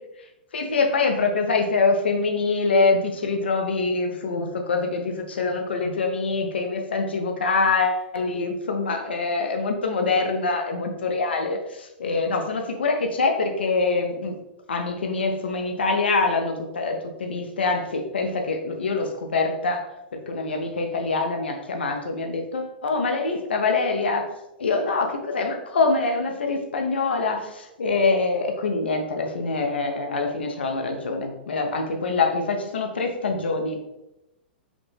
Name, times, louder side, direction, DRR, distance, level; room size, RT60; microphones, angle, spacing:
voice 1, 0.5-14.4 14.7-19.8 20.1-24.3 24.6-33.8, left 3 dB, 80° left, 4 dB, 0.6 m, -24 dB
4.9 x 2.1 x 3.2 m, 0.90 s
hypercardioid pair, 110°, 6 cm